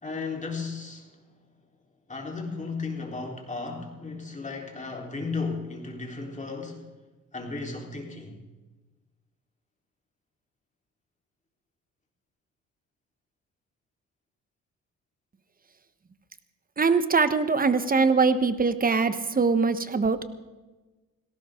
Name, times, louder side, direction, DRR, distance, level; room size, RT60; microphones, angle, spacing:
voice 1, 0.0-1.1 2.1-6.8 7.3-8.4, left 4 dB, 25° left, 1 dB, 3.9 m, -34 dB
voice 2, 16.8-20.2, right 4 dB, 30° right, 12 dB, 1.2 m, -22 dB
18.5 x 17.0 x 3.8 m, 1.2 s
cardioid pair, 90°, 30 cm